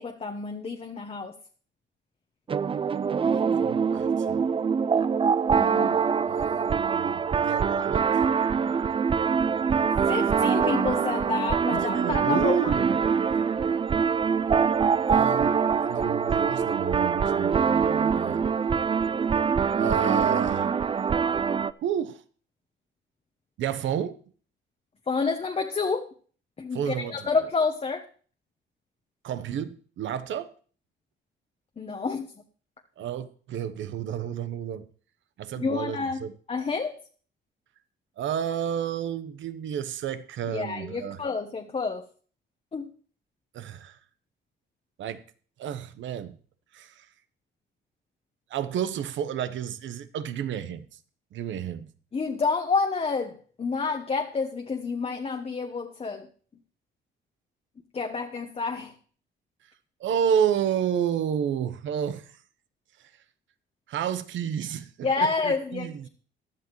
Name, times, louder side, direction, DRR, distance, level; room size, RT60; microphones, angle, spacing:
voice 1, 0.0-1.3 5.5-6.0 10.1-12.7 25.1-26.1 26.6-28.0 31.8-32.3 35.6-36.2 36.5-37.0 40.5-42.0 42.7-42.9 52.1-56.3 57.9-58.9 65.0-66.1, left 4 dB, 30° left, 4 dB, 1.1 m, -29 dB
sound 1, 2.5-21.7, right 6 dB, 25° right, 0.4 m, -24 dB
voice 2, 3.6-4.4 6.3-8.1 11.7-13.1 15.1-18.5 19.8-20.7 21.8-22.2 23.6-24.1 26.7-27.3 29.2-30.5 33.0-34.9 35.4-36.3 38.2-41.2 43.5-44.0 45.0-45.2 45.6-46.4 46.7-47.1 48.5-50.8 51.3-51.9 60.0-62.4 63.0-63.1 63.9-66.1, right 9 dB, 70° right, 12 dB, 1.0 m, -31 dB
15.0 x 10.5 x 3.2 m, 0.43 s
cardioid pair, 90°, 20 cm